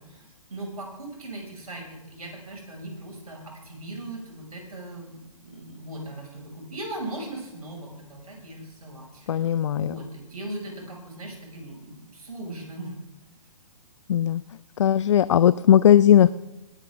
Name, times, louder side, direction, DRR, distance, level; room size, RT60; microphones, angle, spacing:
voice 1, 0.0-13.0, right 1 dB, 80° right, 0 dB, 5.7 m, -39 dB
voice 2, 9.3-9.9 14.1-14.4 14.8-16.3, left 10 dB, 55° left, 17 dB, 0.4 m, -18 dB
19.5 x 11.5 x 3.6 m, 0.98 s
figure-of-eight pair, 130°, 18 cm